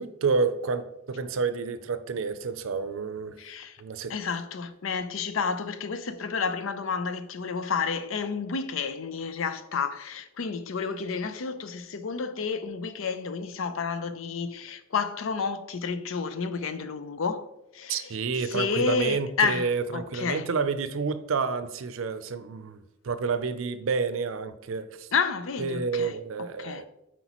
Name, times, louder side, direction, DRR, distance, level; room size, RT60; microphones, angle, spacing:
voice 1, 0.0-3.4 3.8-4.1 17.9-25.1 25.6-26.8, right 5 dB, 85° right, 0.5 m, -29 dB
voice 2, 3.4-3.8 4.1-17.5 17.7-18.1 18.5-19.7 19.9-20.5 25.1-26.1 26.6-26.8, left 5 dB, 85° left, 0.5 m, -30 dB
8.0 x 4.5 x 3.0 m
head